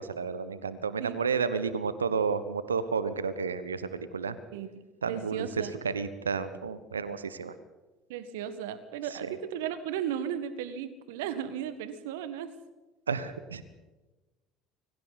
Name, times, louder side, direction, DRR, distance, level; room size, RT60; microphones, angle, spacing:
voice 1, 0.0-4.4 5.0-7.5 9.3-9.4 13.1-13.6, right 5 dB, 85° right, 14 dB, 1.1 m, -31 dB
voice 2, 5.0-5.7 8.1-12.5, right 9 dB, 70° right, 12 dB, 1.6 m, -35 dB
30.0 x 22.5 x 4.2 m, 1.2 s
figure-of-eight pair, 60°, 0 cm